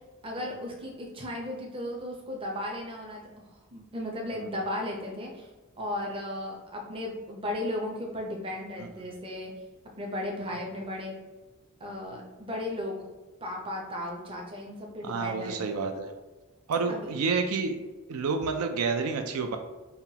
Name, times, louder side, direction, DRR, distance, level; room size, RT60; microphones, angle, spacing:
voice 1, 0.2-3.2 3.7-5.5 5.8-9.5 10.0-11.2 11.8-13.1 13.4-15.8 16.9-17.2, left 1 dB, 25° right, 0 dB, 0.6 m, -35 dB
voice 2, 15.0-16.1 16.7-17.8 18.1-19.6, right 4 dB, 85° right, 6 dB, 0.4 m, -29 dB
5.6 x 2.3 x 2.8 m, 1.2 s
head